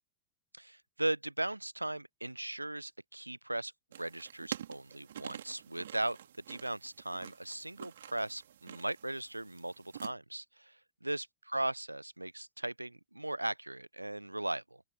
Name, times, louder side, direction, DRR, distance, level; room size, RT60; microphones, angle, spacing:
voice 1, 0.5-3.7 4.0-6.2 6.5-14.8, right 1 dB, 85° right, 0.8 m, -38 dB
sound 1, 3.9-10.1, right 10 dB, 60° right, 3.2 m, -48 dB
open air
figure-of-eight pair, 90°, 0 cm